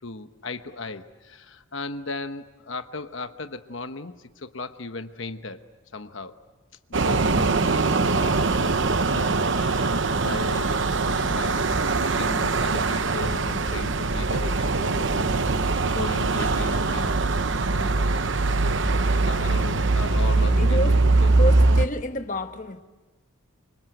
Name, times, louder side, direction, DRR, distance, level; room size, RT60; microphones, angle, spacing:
voice 1, 0.0-6.4 6.9-10.9 11.2-17.2 17.7-18.1 19.1-21.3, left 3 dB, 65° left, 1.1 m, -37 dB
sound 1, 6.9-21.9, right 3 dB, 60° right, 0.9 m, -22 dB
voice 2, 20.6-21.0 21.4-22.8, left 1 dB, 40° left, 1.2 m, -29 dB
29.0 x 25.5 x 8.0 m
head